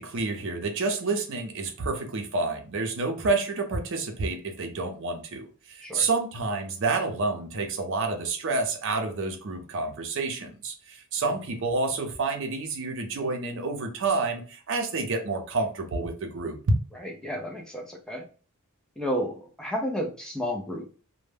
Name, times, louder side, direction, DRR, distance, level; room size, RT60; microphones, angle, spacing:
voice 1, 0.0-16.6, right 3 dB, 60° right, 4 dB, 0.5 m, -29 dB
voice 2, 16.9-18.2 19.0-20.9, equal, 5° left, 0 dB, 0.4 m, -32 dB
2.1 x 2.1 x 3.2 m, 0.38 s
head